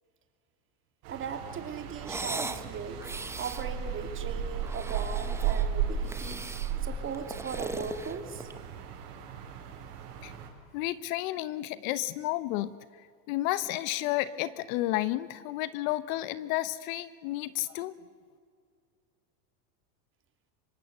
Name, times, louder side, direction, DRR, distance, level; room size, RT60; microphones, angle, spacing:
sound 1, 1.0-10.5, right 8 dB, 65° right, 5.2 m, -35 dB
voice 1, 1.1-3.0 3.4-6.4 6.8-8.5, right 6 dB, 25° right, 6 dB, 2.8 m, -38 dB
sound 2, 2.0-2.6 3.0-3.7 4.5-5.7 6.1-6.7 7.1-8.7, right 3 dB, 5° right, 0.8 m, -38 dB
voice 2, 10.7-12.7 13.3-17.9, left 16 dB, 55° left, 15 dB, 1.1 m, -31 dB
25.5 x 22.5 x 8.1 m, 2.1 s
supercardioid pair, 135°, 49 cm